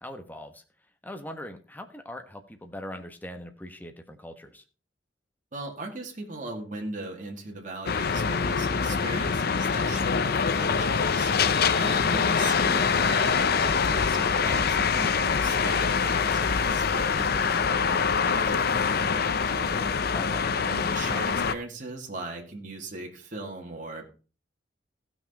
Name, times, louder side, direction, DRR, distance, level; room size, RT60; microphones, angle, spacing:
voice 1, 0.0-0.6 1.0-4.6 20.1-20.5 21.1-21.2, left 1 dB, 10° left, 6 dB, 1.2 m, -41 dB
voice 2, 5.5-11.3 11.8-19.9 20.6-24.0, right 2 dB, 45° right, 1 dB, 2.1 m, -39 dB
sound 1, 7.9-21.5, left 5 dB, 55° left, 0.6 m, -24 dB
15.5 x 6.1 x 4.2 m, 0.35 s
head